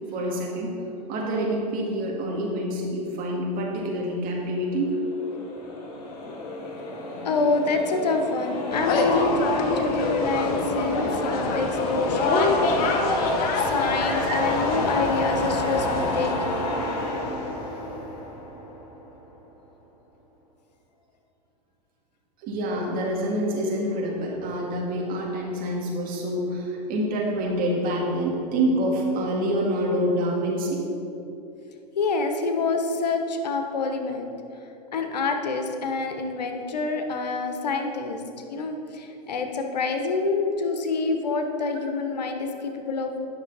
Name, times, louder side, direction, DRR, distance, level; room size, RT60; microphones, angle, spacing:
voice 1, 0.1-0.7 1.1-5.0 14.3-14.5 22.4-30.9 37.5-37.9, right 1 dB, 45° right, -2 dB, 2.1 m, -27 dB
sound 1, 4.8-19.1, left 2 dB, 65° left, 1.9 m, -30 dB
voice 2, 7.2-16.7 32.0-34.3 34.9-38.2 38.5-43.2, left 3 dB, 85° left, 5 dB, 1.0 m, -27 dB
sound 2, 8.7-16.3, left 3 dB, 45° left, 1.1 m, -26 dB
10.0 x 6.2 x 4.1 m, 2.8 s
hypercardioid pair, 100°, 21 cm